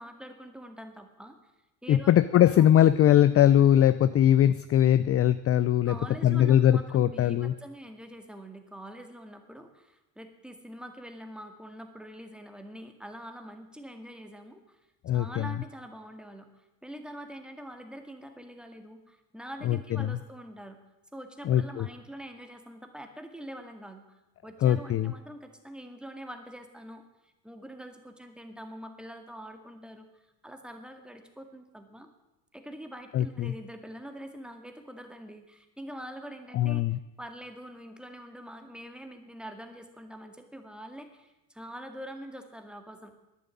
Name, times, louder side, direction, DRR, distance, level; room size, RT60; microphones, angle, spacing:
voice 1, 0.0-1.5 1.8-2.5 5.8-14.8 15.1-20.8 21.1-32.1 32.5-43.1, equal, ahead, 6 dB, 1.9 m, -45 dB
voice 2, 1.9-5.9 6.2-7.5 15.0-15.4 19.7-20.1 21.5-21.9 24.6-25.1 33.1-33.5 36.5-37.0, left 11 dB, 30° left, 15 dB, 0.4 m, -21 dB
11.5 x 9.5 x 9.7 m, 0.99 s
supercardioid pair, 110°, 46 cm